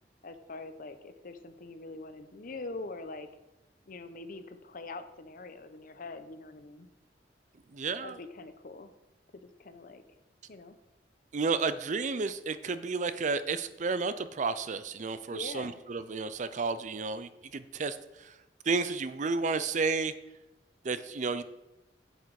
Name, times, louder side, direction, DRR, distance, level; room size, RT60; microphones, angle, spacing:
voice 1, 0.2-3.3 3.9-6.9 8.0-8.9 9.3-10.0 10.5-10.8 15.3-15.7, left 3 dB, 50° left, 10 dB, 0.8 m, -44 dB
voice 2, 7.7-8.2 11.3-18.4 18.6-20.1 20.8-21.4, right 4 dB, 45° right, 13 dB, 0.5 m, -32 dB
8.2 x 7.7 x 4.8 m, 0.98 s
head